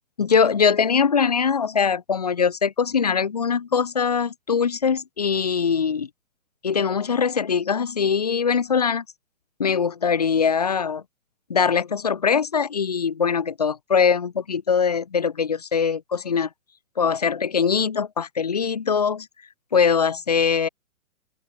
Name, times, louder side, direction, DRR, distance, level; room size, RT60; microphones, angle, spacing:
voice 1, 0.2-6.1 6.6-9.0 9.6-11.0 11.5-16.5 17.0-19.3 19.7-20.7, left 6 dB, 30° left, 0.6 m, -22 dB
open air
hypercardioid pair, 170°, 42 cm